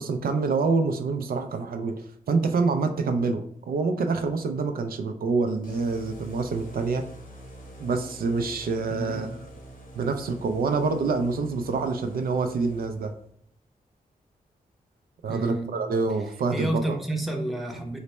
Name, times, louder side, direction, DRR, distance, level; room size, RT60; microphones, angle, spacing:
voice 1, 0.0-7.0 7.8-9.4 10.0-13.1 15.2-17.0, right 4 dB, 75° right, 6 dB, 0.4 m, -26 dB
sound 1, 5.6-13.3, right 1 dB, 65° left, 0.8 m, -45 dB
voice 2, 8.9-9.4 15.3-15.7 16.5-18.0, right 1 dB, ahead, 1 dB, 0.6 m, -30 dB
3.2 x 2.0 x 4.1 m, 0.63 s
wide cardioid pair, 100°, 15 cm